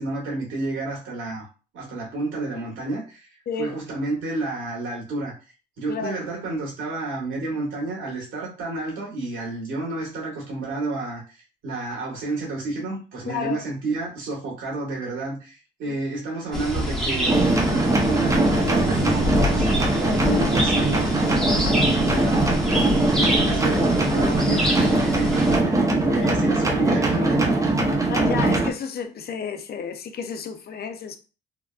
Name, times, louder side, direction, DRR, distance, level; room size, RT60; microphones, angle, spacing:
voice 1, 0.0-1.5 1.7-3.3 3.6-5.3 5.8-11.4 11.6-27.6, right 2 dB, 80° right, 1.6 m, -30 dB
voice 2, 3.5-3.8 5.9-6.2 13.3-13.6 15.9-16.0 28.1-31.2, left 7 dB, 50° left, 0.5 m, -31 dB
sound 1, 16.5-25.6, equal, ahead, 1.0 m, -26 dB
sound 2, 17.2-28.7, right 2 dB, 15° right, 0.7 m, -21 dB
3.8 x 2.2 x 2.4 m
cardioid pair, 90°, 20 cm